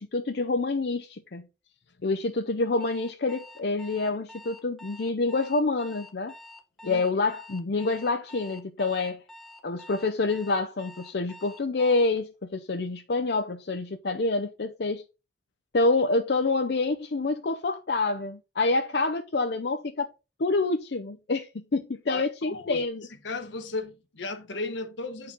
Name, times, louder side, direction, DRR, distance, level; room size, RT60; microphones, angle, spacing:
voice 1, 0.0-1.5 2.0-6.3 6.8-9.2 9.6-15.0 15.7-20.1 20.4-23.0, left 3 dB, 60° left, 0.6 m, -27 dB
Alarm, 2.8-12.2, left 1 dB, ahead, 0.8 m, -48 dB
voice 2, 22.1-22.8 23.2-25.3, left 3 dB, 80° left, 1.2 m, -35 dB
8.6 x 4.6 x 3.8 m
head